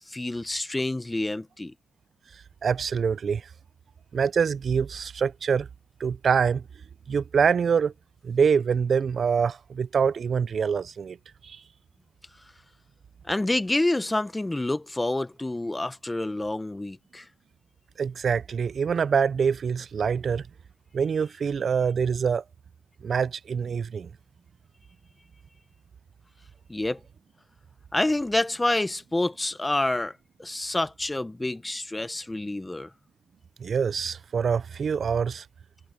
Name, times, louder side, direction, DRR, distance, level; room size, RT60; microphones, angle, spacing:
voice 1, 0.1-1.7 13.3-17.2 26.7-27.0 27.9-32.9, left 2 dB, 15° left, 0.8 m, -28 dB
voice 2, 2.6-3.4 4.1-5.7 6.0-6.6 7.1-7.9 8.2-11.2 11.4-11.6 18.0-20.4 20.9-22.4 23.0-24.1 33.6-35.4, right 6 dB, 45° right, 0.4 m, -25 dB
cardioid pair, 90°, 0 cm